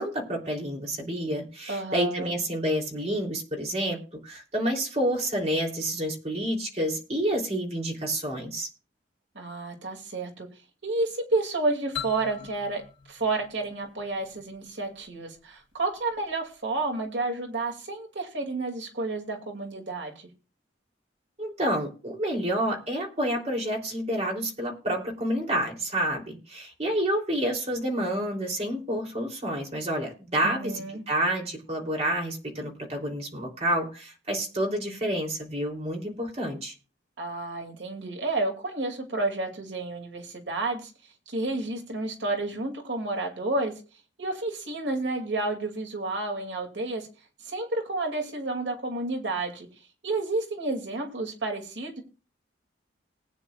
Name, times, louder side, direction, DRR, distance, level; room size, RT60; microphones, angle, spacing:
voice 1, 0.0-8.7 21.4-36.7, right 1 dB, 35° right, 0 dB, 3.2 m, -29 dB
voice 2, 1.7-2.3 9.3-10.5 10.8-12.8 13.1-20.3 30.4-31.0 37.2-40.9 41.3-43.7 44.2-47.1 47.4-49.7 50.0-52.0, right 2 dB, 70° right, 3 dB, 2.5 m, -30 dB
sound 1, 11.9-14.6, left 10 dB, 85° left, 2.7 m, -41 dB
20.0 x 9.3 x 2.4 m, 0.35 s
head